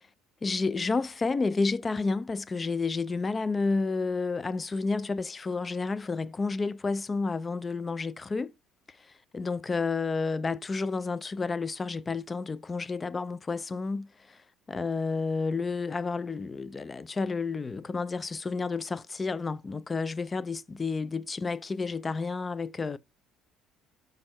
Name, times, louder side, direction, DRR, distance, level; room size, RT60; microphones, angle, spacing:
voice 1, 0.4-8.5 9.3-14.4 14.7-23.0, left 4 dB, 25° left, 0.3 m, -30 dB
5.2 x 4.3 x 4.5 m
cardioid pair, 110°, 0 cm